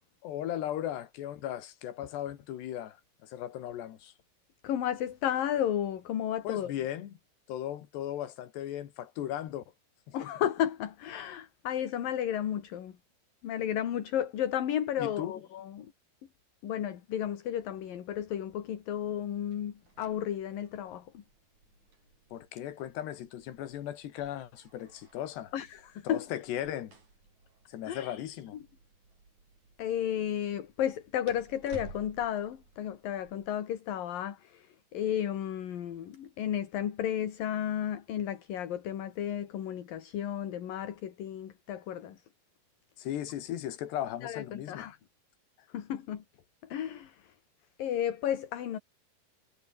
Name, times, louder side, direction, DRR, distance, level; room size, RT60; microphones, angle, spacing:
voice 1, 0.2-4.1 6.4-7.1 7.5-9.6 10.1-10.2 15.0-15.3 22.3-25.5 26.1-26.9 27.7-28.6 43.0-44.9, left 11 dB, 80° left, 4.0 m, -37 dB
voice 2, 4.6-6.7 10.1-13.0 13.4-15.9 16.6-21.2 25.5-26.3 27.9-28.2 29.8-42.2 44.2-45.0 45.7-46.2 46.6-47.3 47.8-48.8, left 10 dB, 60° left, 3.6 m, -33 dB
sound 1, 19.5-33.5, right 3 dB, 45° right, 8.1 m, -55 dB
omnidirectional pair, 4.8 m